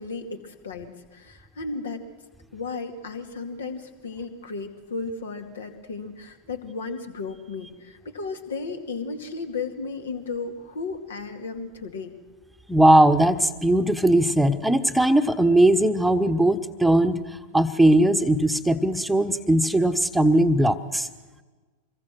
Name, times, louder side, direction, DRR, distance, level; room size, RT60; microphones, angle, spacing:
voice 1, 0.0-2.0 2.5-12.1, left 4 dB, 65° left, 7 dB, 2.4 m, -34 dB
voice 2, 12.7-17.2 17.5-21.1, right 1 dB, 5° right, 9 dB, 1.2 m, -19 dB
26.0 x 22.0 x 6.3 m, 1.3 s
figure-of-eight pair, 90°, 0 cm